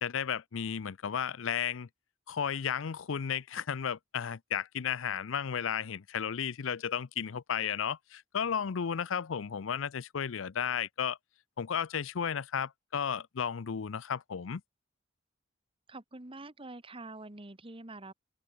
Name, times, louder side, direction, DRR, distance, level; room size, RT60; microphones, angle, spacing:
voice 1, 0.0-1.9 2.3-11.2 11.6-14.6, left 7 dB, 90° left, 0.5 m, -33 dB
voice 2, 15.9-18.1, right 2 dB, 30° right, 1.6 m, -46 dB
open air
head